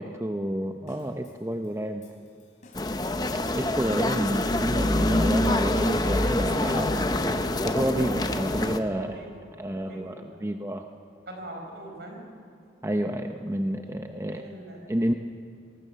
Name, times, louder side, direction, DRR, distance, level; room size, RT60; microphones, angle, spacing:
voice 1, 0.0-2.1 3.6-9.2 9.6-10.9 12.8-14.4 14.9-15.1, right 1 dB, 15° right, 5 dB, 0.6 m, -29 dB
sound 1, 0.9-7.1, left 2 dB, 40° left, 4.0 m, -52 dB
sound 2, 2.7-8.8, left 1 dB, 20° left, 0.7 m, -25 dB
voice 2, 8.9-9.3 9.7-10.4 11.3-12.2 13.7-13.8 14.3-14.9, right 1 dB, 65° right, 1 dB, 4.8 m, -42 dB
22.0 x 19.0 x 6.8 m, 2.3 s
head